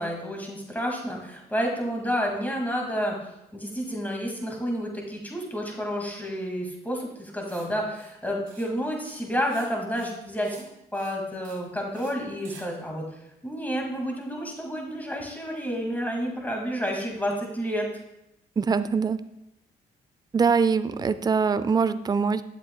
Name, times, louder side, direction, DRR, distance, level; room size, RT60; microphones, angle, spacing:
voice 1, 0.0-3.2 3.5-10.7 10.9-17.9, equal, 10° left, 0 dB, 2.1 m, -30 dB
Writing, 7.4-7.7 7.9-8.1 8.4-8.7 8.9-9.7 9.9-10.2 10.4-10.7 10.9-11.2 11.4-11.6 11.9-12.1 12.4-12.6, right 6 dB, 85° right, 1.1 m, -50 dB
voice 2, 18.6-19.2 20.3-22.4, right 5 dB, 20° right, 14 dB, 0.4 m, -23 dB
8.2 x 7.3 x 2.2 m, 0.85 s
supercardioid pair, 55°, 20 cm